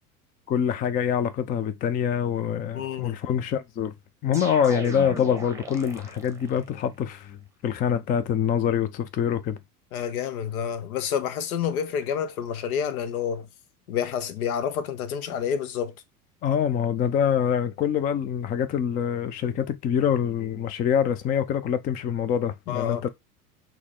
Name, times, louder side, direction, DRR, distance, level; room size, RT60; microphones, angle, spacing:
voice 1, 0.5-3.9 4.2-9.6 16.4-23.1, left 8 dB, 20° left, 0.3 m, -25 dB
voice 2, 2.7-3.2 9.9-13.5 13.9-15.9 22.7-23.0, left 8 dB, 70° left, 0.8 m, -29 dB
sound 1, 4.3-6.6, right 3 dB, 5° right, 0.9 m, -38 dB
6.2 x 2.1 x 3.6 m
hypercardioid pair, 80°, 45 cm